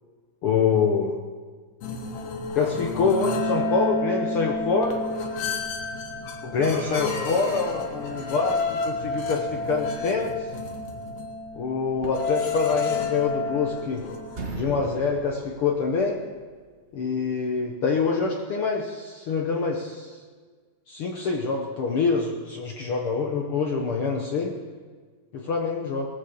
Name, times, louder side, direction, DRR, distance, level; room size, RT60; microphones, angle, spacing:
voice 1, 0.4-1.2 2.5-5.0 6.4-10.4 11.5-14.1 14.6-16.2 16.9-20.2 20.9-24.5 25.3-26.1, left 5 dB, 65° left, 1 dB, 1.4 m, -25 dB
sound 1, 1.8-14.4, left 3 dB, 85° left, 3.1 m, -30 dB
sound 2, 6.6-8.7, right 4 dB, 90° right, 2.9 m, -39 dB
sound 3, 13.2-14.0 14.3-16.4, right 3 dB, 50° right, 0.7 m, -38 dB
18.0 x 9.3 x 7.0 m, 1.5 s
omnidirectional pair, 3.8 m